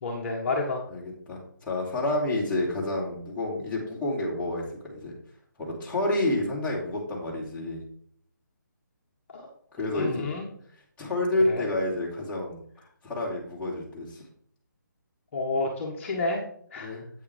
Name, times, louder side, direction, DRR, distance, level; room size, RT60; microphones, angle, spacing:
voice 1, 0.0-0.8 9.3-9.5 9.8-10.5 11.4-11.6 15.3-16.4 16.7-17.0, left 3 dB, 40° left, -1 dB, 1.4 m, -30 dB
voice 2, 0.9-5.1 5.6-7.8 9.7-10.3 11.0-12.6 13.0-14.2 16.8-17.0, left 1 dB, 10° left, -7 dB, 2.8 m, -29 dB
8.7 x 8.5 x 3.5 m, 0.62 s
figure-of-eight pair, 150°, 11 cm